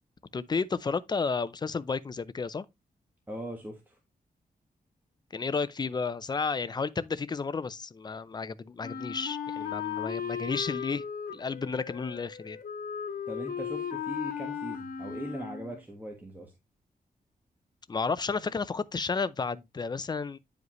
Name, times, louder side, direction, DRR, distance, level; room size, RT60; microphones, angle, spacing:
voice 1, 0.3-2.7 5.3-11.0 11.3-12.6 17.9-20.4, left 4 dB, 25° left, 0.5 m, -32 dB
voice 2, 3.3-4.0 13.3-16.5, right 1 dB, 10° right, 1.4 m, -40 dB
Wind instrument woodwind instrument, 8.8-15.8, left 7 dB, 70° left, 1.6 m, -36 dB
9.4 x 5.0 x 3.1 m
wide cardioid pair, 165°, 16 cm